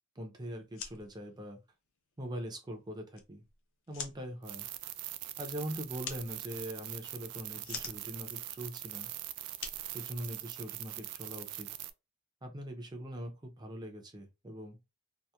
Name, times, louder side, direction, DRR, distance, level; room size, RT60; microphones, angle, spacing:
voice 1, 0.2-1.6 2.2-3.4 3.9-4.7 5.4-9.1 9.9-11.7 12.4-14.8, equal, 20° right, 0.5 m, -42 dB
sound 1, 0.6-10.8, left 7 dB, 55° left, 0.5 m, -48 dB
sound 2, 4.4-11.9, right 13 dB, 85° right, 0.3 m, -42 dB
2.8 x 2.1 x 2.2 m
head